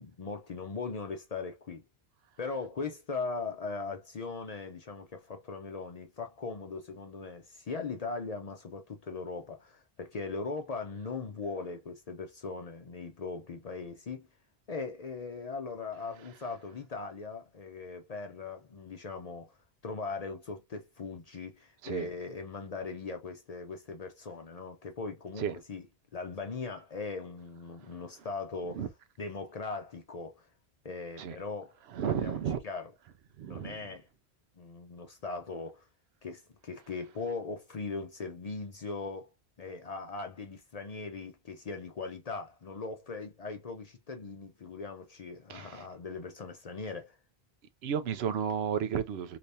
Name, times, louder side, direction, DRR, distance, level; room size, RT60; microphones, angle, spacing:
voice 1, 0.0-1.8 2.4-14.3 14.7-19.5 19.8-25.9 26.1-28.9 29.2-30.5 30.8-31.8 32.0-32.9 33.5-34.1 34.6-35.9 36.2-39.3 39.6-47.2, left 4 dB, 50° left, 0.5 m, -39 dB
voice 2, 31.9-32.6 33.4-33.8 45.5-45.8 47.8-49.4, right 8 dB, 80° right, 0.8 m, -32 dB
3.3 x 2.9 x 2.6 m
omnidirectional pair, 1.1 m